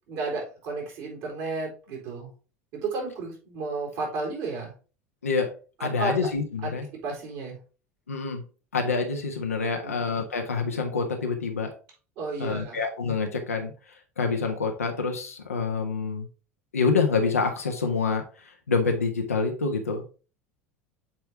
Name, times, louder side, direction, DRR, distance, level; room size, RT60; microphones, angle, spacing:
voice 1, 0.1-2.3 2.7-4.7 5.8-6.2 6.6-6.7 7.0-7.6 9.7-10.0 12.2-12.8, right 3 dB, 55° right, -1 dB, 3.9 m, -32 dB
voice 2, 5.8-6.9 8.1-8.4 8.7-11.7 12.4-16.3 16.7-20.0, left 4 dB, 80° left, 3 dB, 1.4 m, -27 dB
7.5 x 4.6 x 3.5 m, 0.35 s
figure-of-eight pair, 75°, 8 cm